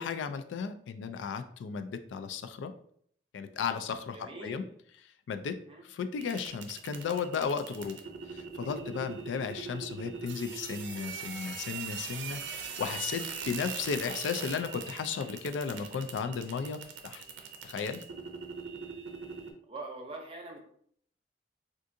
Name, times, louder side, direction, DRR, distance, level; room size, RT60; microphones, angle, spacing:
voice 1, 0.0-2.7 3.3-4.6 5.3-5.6 5.9-8.0 8.3-17.2 17.6-18.0, left 6 dB, 85° left, 9 dB, 0.3 m, -35 dB
voice 2, 4.1-4.7 5.7-5.9 19.7-20.6, right 2 dB, 30° right, 1 dB, 0.6 m, -43 dB
sound 1, 6.2-19.5, right 6 dB, 85° right, 0.5 m, -41 dB
3.6 x 2.5 x 2.6 m, 0.64 s
head